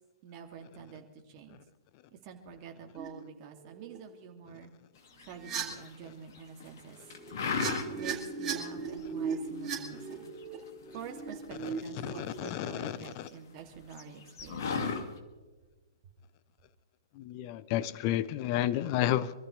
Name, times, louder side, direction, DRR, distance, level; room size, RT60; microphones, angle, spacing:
voice 1, 0.2-1.6 2.1-4.7 5.2-7.0 7.9-10.3 10.9-14.6, right 7 dB, 35° right, 2.7 m, -47 dB
sound 1, 3.0-3.1 3.7-4.0 5.4-5.6 6.9-12.2, right 5 dB, 20° right, 5.9 m, -38 dB
sound 2, 5.2-6.0 6.4-6.8 7.1-8.2 8.5-8.6 9.0-9.5 9.9-11.8 12.1-13.3 13.6-13.7 13.9-15.0, left 5 dB, 55° left, 2.3 m, -35 dB
voice 2, 12.0-13.3 17.2-19.3, left 12 dB, 35° left, 0.7 m, -31 dB
26.5 x 14.0 x 3.4 m
figure-of-eight pair, 120°, 2 cm